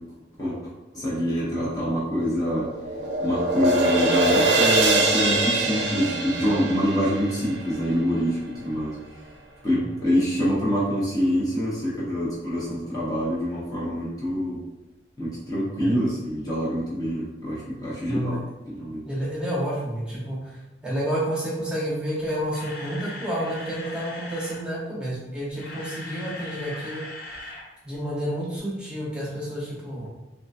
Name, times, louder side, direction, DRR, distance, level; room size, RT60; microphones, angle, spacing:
voice 1, 0.9-2.7 3.2-9.0 9.6-14.6 15.2-18.4 18.7-19.1, equal, 20° left, -7 dB, 0.7 m, -25 dB
sound 1, 2.1-8.4, right 2 dB, 80° right, 0.5 m, -24 dB
voice 2, 18.0-18.4 19.1-27.0 27.8-30.1, equal, 5° right, -6 dB, 0.8 m, -30 dB
Camera, 22.5-24.6 25.4-27.7 27.9-28.1 28.6-28.7, left 1 dB, 55° left, 0.6 m, -39 dB
3.7 x 2.4 x 2.4 m, 1.1 s
head